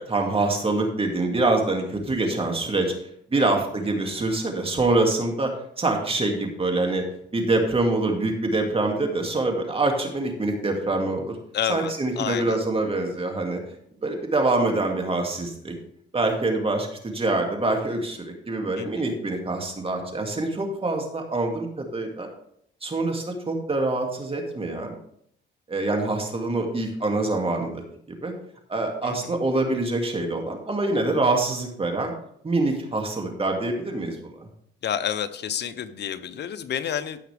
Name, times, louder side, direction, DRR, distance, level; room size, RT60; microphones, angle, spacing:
voice 1, 0.0-2.9 3.3-5.5 5.8-7.0 7.3-11.3 11.7-13.6 14.0-15.7 16.1-22.3 22.8-24.9 25.7-27.8 28.2-28.3 28.7-32.1 32.4-34.3, right 2 dB, 30° right, 2 dB, 2.4 m, -25 dB
voice 2, 11.5-12.6 18.8-19.1 29.0-29.3 34.8-37.2, left 9 dB, 60° left, 12 dB, 0.8 m, -30 dB
15.5 x 5.8 x 3.4 m, 0.70 s
cardioid pair, 90°, 20 cm